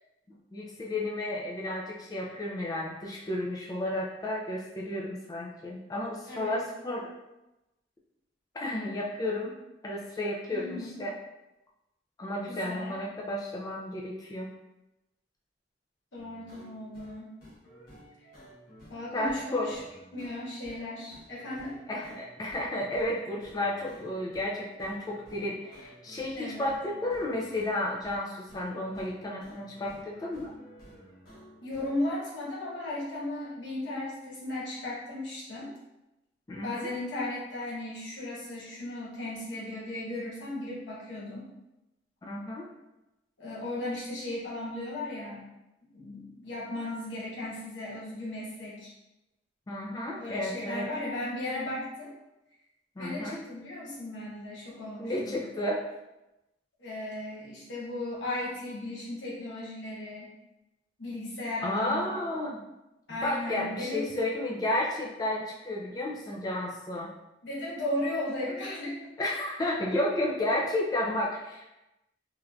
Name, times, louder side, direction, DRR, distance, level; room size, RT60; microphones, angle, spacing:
voice 1, 0.5-7.1 8.5-9.6 9.8-11.1 12.2-14.5 19.1-19.7 21.9-30.5 36.5-36.9 42.3-42.7 49.7-50.8 53.0-53.4 55.0-55.9 61.6-62.6 63.1-67.1 69.2-71.7, left 1 dB, 20° left, -3 dB, 0.3 m, -32 dB
voice 2, 6.3-6.6 10.5-10.9 12.5-12.9 16.1-17.3 18.9-19.8 20.1-21.7 26.3-26.7 31.6-35.7 36.6-41.5 43.4-45.4 45.9-48.9 50.2-52.1 53.0-55.4 56.8-60.3 61.0-62.1 63.1-64.2 67.4-69.1, left 1 dB, 90° left, -6 dB, 1.1 m, -36 dB
sound 1, 16.2-31.9, equal, 55° left, 1.0 m, -52 dB
3.2 x 2.4 x 2.2 m, 0.96 s
head